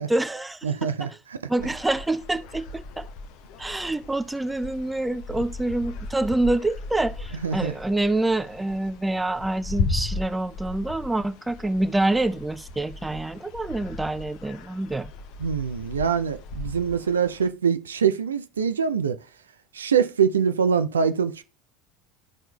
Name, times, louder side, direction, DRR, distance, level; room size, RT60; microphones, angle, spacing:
voice 1, 0.0-1.1 1.5-3.1 3.6-15.1, right 2 dB, 10° right, 0.5 m, -26 dB
voice 2, 0.6-1.4 7.4-7.7 15.4-19.2 19.7-21.4, right 7 dB, 80° right, 0.4 m, -24 dB
sound 1, 1.6-17.5, left 3 dB, 55° left, 0.6 m, -36 dB
13.0 x 4.4 x 2.3 m
figure-of-eight pair, 75°, 0 cm